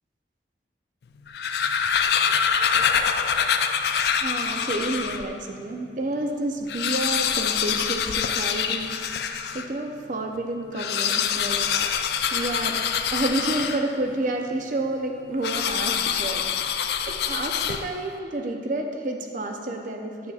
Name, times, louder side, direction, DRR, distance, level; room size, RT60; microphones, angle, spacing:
sound 1, 1.2-5.3 5.9-6.0 6.2-6.3 6.6-9.7 10.7-14.1 15.4-18.1, left 7 dB, 60° left, 0.3 m, -25 dB
voice 1, 4.2-8.9 9.5-11.9 12.3-12.8 13.1-16.5 17.1-20.3, right 2 dB, 45° right, 3 dB, 0.6 m, -29 dB
9.2 x 8.0 x 2.4 m, 2.4 s
head